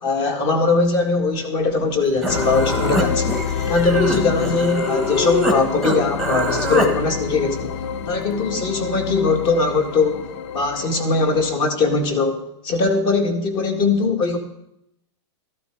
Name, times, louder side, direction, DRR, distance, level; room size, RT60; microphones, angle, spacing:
voice 1, 0.0-3.4 3.7-7.7 8.1-10.2 10.5-14.4, left 3 dB, 30° left, 6 dB, 1.7 m, -20 dB
Human voice, 1.9-2.0 2.2-5.6 5.8-6.9, left 1 dB, ahead, 1.2 m, -23 dB
sound 1, 2.3-11.6, left 7 dB, 80° left, 0.8 m, -28 dB
13.0 x 12.0 x 4.6 m, 0.79 s
supercardioid pair, 165°, 15 cm